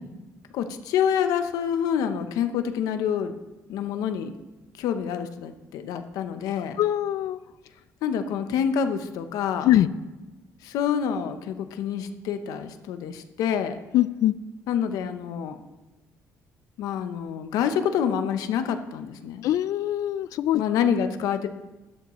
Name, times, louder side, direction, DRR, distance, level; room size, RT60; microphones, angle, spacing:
voice 1, 0.5-3.4 3.7-4.3 4.8-6.8 8.0-9.7 10.6-13.8 14.7-15.6 16.8-19.4 20.6-21.5, left 8 dB, 85° left, 8 dB, 0.8 m, -27 dB
voice 2, 6.8-7.4 9.6-9.9 13.9-14.3 19.4-20.6, left 13 dB, 70° left, 16 dB, 0.4 m, -22 dB
12.0 x 12.0 x 3.1 m, 1.1 s
cardioid pair, 130°, 6 cm